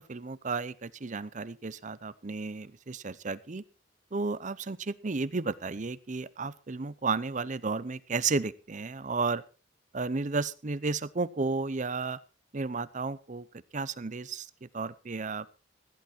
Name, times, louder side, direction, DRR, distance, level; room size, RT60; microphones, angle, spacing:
voice 1, 0.0-3.6 4.1-9.4 9.9-12.2 12.5-13.5 13.7-15.5, right 4 dB, 40° right, 18 dB, 0.6 m, -33 dB
16.0 x 11.0 x 4.4 m, 0.32 s
head